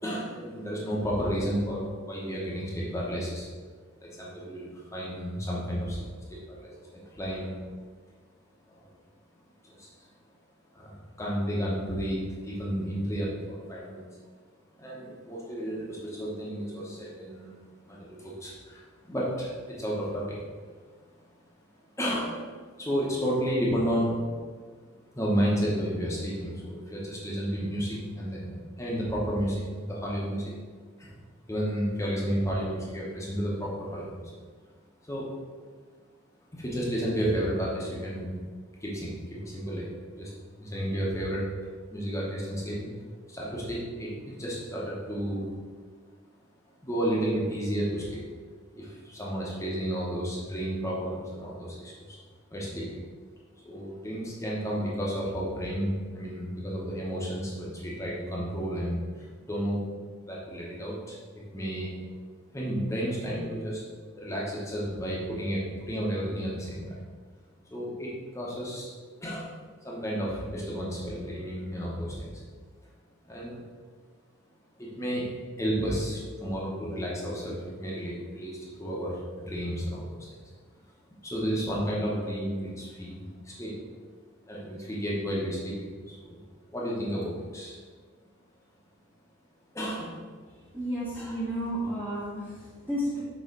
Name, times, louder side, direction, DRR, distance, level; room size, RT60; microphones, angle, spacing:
voice 1, 0.0-3.5 4.0-6.0 6.3-7.5 8.7-8.9 9.6-9.9 10.7-14.0 14.8-17.6 17.8-20.4 22.0-22.4 22.8-24.2 25.1-30.5 31.0-31.1 31.5-34.4 35.0-35.3 36.5-38.4 38.8-40.3 40.6-41.5 41.9-42.9 43.3-45.5 46.8-48.2 48.7-52.2 52.5-53.0 53.6-59.9 60.3-61.2 61.5-62.0 62.5-63.8 64.2-67.0 67.7-68.9 69.2-69.5 69.8-72.4 73.2-73.6 74.8-80.4 81.2-83.8 84.5-86.4 86.7-87.8 89.7-90.2, equal, 15° left, -5 dB, 1.0 m, -32 dB
voice 2, 90.7-93.2, equal, 10° right, -10 dB, 1.0 m, -32 dB
6.5 x 3.2 x 4.6 m, 1.5 s
head